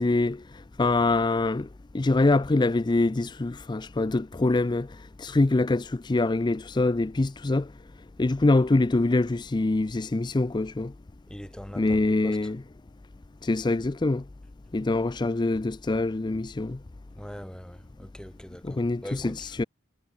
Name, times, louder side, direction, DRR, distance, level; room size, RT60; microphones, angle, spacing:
voice 1, 0.0-1.7 1.9-7.7 8.2-10.9 11.8-12.6 13.4-14.2 14.7-16.8 18.6-19.6, left 2 dB, 20° left, 0.4 m, -24 dB
voice 2, 11.3-12.4 17.1-19.5, equal, 5° left, 3.3 m, -42 dB
head